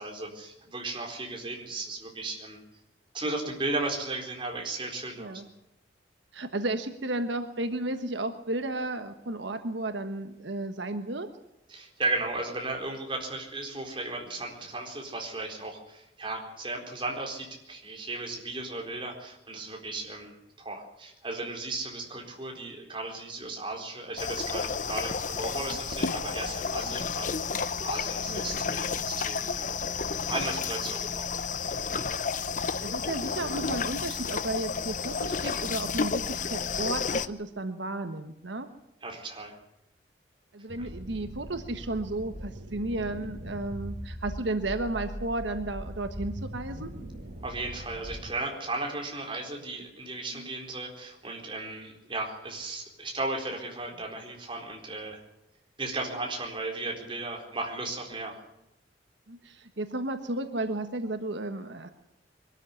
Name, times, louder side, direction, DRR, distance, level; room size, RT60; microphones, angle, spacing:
voice 1, 0.0-2.6 3.1-5.4 11.7-29.7 30.3-31.3 39.0-39.5 40.8-40.9 47.4-55.2 55.8-58.4, right 2 dB, 25° right, 2 dB, 4.2 m, -35 dB
voice 2, 6.3-11.3 26.8-27.0 28.3-28.6 32.8-38.7 40.5-46.9 50.3-50.5 59.3-61.9, right 2 dB, 80° right, 8 dB, 1.3 m, -33 dB
sound 1, 24.2-37.3, left 5 dB, 45° left, 0.9 m, -31 dB
sound 2, 40.7-48.3, equal, 60° right, 3.2 m, -40 dB
22.5 x 13.0 x 9.7 m, 0.86 s
head